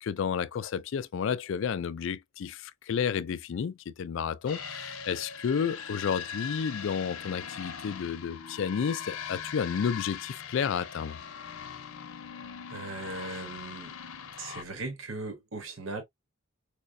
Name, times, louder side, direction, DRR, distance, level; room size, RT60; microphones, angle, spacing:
voice 1, 0.0-11.2, left 7 dB, 60° left, 0.3 m, -31 dB
sound 1, 4.5-14.6, left 7 dB, 80° left, 0.7 m, -41 dB
voice 2, 12.7-13.9 14.4-16.0, right 3 dB, 70° right, 0.9 m, -38 dB
4.8 x 2.1 x 2.5 m
head